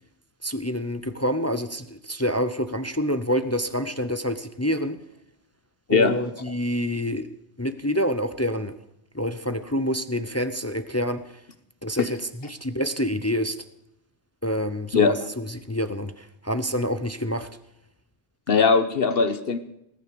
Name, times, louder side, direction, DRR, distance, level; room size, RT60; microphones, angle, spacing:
voice 1, 0.4-5.0 5.9-7.3 7.6-8.7 9.1-11.4 11.8-13.6 14.4-17.5, equal, 15° left, 11 dB, 0.7 m, -27 dB
voice 2, 18.5-19.6, left 5 dB, 65° left, 12 dB, 1.2 m, -20 dB
20.0 x 10.0 x 6.8 m, 0.79 s
omnidirectional pair, 1.1 m